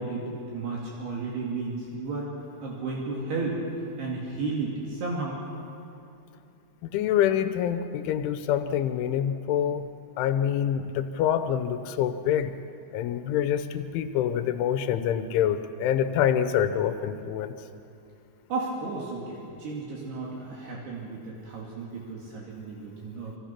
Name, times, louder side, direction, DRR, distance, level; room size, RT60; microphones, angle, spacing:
voice 1, 0.0-2.3 2.6-3.6 4.0-5.4 18.5-23.4, right 3 dB, 65° right, -3 dB, 4.2 m, -33 dB
voice 2, 6.9-9.9 10.2-12.5 12.9-17.5, left 9 dB, 90° left, 9 dB, 3.3 m, -26 dB
26.0 x 25.5 x 5.9 m, 2.6 s
omnidirectional pair, 5.3 m